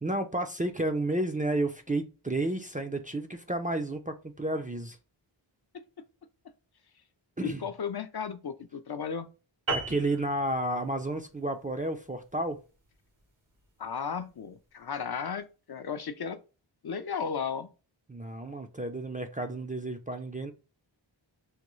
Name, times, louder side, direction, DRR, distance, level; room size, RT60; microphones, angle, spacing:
voice 1, 0.0-5.0 7.4-7.6 9.7-12.6 18.1-20.5, right 1 dB, 20° right, 0.4 m, -31 dB
voice 2, 7.4-9.3 13.8-16.4 16.8-17.7, left 6 dB, 55° left, 0.5 m, -35 dB
sound 1, 9.7-14.4, right 3 dB, 80° right, 1.2 m, -38 dB
3.5 x 2.2 x 3.0 m
wide cardioid pair, 50°, 47 cm